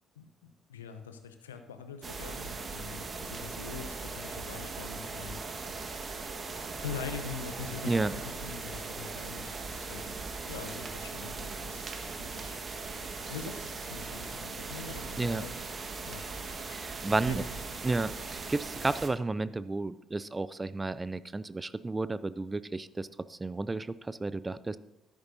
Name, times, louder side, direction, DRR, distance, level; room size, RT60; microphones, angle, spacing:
voice 1, 0.2-5.4 6.8-10.2 10.5-12.6 13.3-15.5 16.0-16.2 17.1-17.6, left 6 dB, 85° left, 7 dB, 0.7 m, -43 dB
sound 1, 2.0-19.1, right 4 dB, 40° right, 1.5 m, -39 dB
voice 2, 16.7-17.4 17.8-24.8, right 3 dB, 20° right, 16 dB, 0.5 m, -32 dB
13.5 x 11.0 x 2.7 m, 0.84 s
figure-of-eight pair, 45°, 0 cm